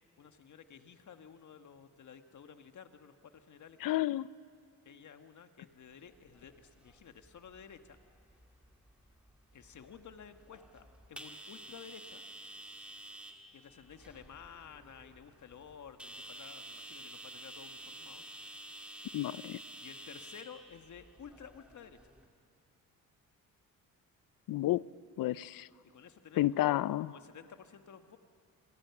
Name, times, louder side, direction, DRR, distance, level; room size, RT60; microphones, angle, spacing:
voice 1, 0.2-4.1 4.8-8.0 9.5-12.2 13.5-18.2 18.5-18.7 19.8-22.2 25.8-26.7 27.1-28.2, left 7 dB, 55° left, 8 dB, 1.6 m, -53 dB
voice 2, 3.8-4.3 19.1-19.6 24.5-24.8 25.2-25.7 26.4-27.1, left 15 dB, 70° left, 19 dB, 0.6 m, -30 dB
sound 1, 6.1-22.3, right 1 dB, 5° right, 2.4 m, -51 dB
29.5 x 22.0 x 6.0 m, 2.6 s
cardioid pair, 80°, 35 cm